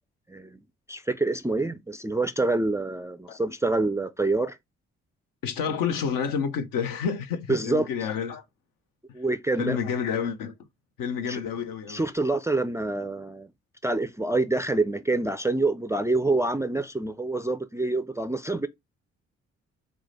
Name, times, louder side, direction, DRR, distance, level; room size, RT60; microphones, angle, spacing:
voice 1, 0.3-0.6 0.9-4.6 7.5-7.9 9.1-9.8 11.3-11.4 11.9-13.5 13.8-18.7, right 2 dB, 10° right, 0.3 m, -26 dB
voice 2, 5.4-8.4 9.6-10.5 11.0-12.0, left 7 dB, 70° left, 0.7 m, -29 dB
4.5 x 2.2 x 4.0 m
hypercardioid pair, 45°, 35 cm